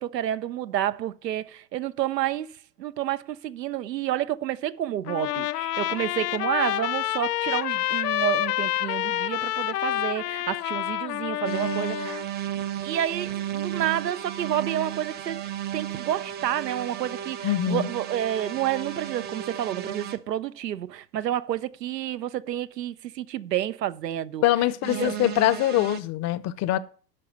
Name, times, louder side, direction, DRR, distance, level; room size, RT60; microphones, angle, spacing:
voice 1, 0.0-2.5 2.8-12.2 12.8-15.4 15.7-24.4 25.0-25.1, right 11 dB, 80° right, 0.7 m, -29 dB
Trumpet, 5.1-12.2, left 14 dB, 70° left, 0.7 m, -28 dB
sound 1, 11.4-20.2 24.8-26.0, right 10 dB, 20° right, 0.6 m, -34 dB
voice 2, 17.4-17.9 24.4-26.8, left 14 dB, 35° left, 0.8 m, -23 dB
12.0 x 5.4 x 6.8 m
figure-of-eight pair, 90°, 49 cm